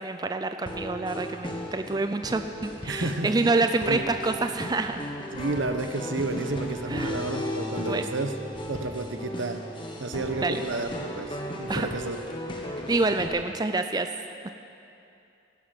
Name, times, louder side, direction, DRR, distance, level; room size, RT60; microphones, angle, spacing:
voice 1, 0.0-5.1 6.9-7.2 7.9-8.1 10.4-10.6 11.7-11.9 12.9-14.1 14.4-14.5, right 3 dB, 20° right, 8 dB, 0.4 m, -27 dB
sound 1, 0.7-13.3, left 1 dB, 25° left, 1.4 m, -36 dB
voice 2, 2.9-4.0 5.3-8.3 8.7-9.6 10.0-12.2, right 2 dB, 80° right, 7 dB, 1.0 m, -31 dB
16.0 x 12.0 x 6.0 m, 2.7 s
head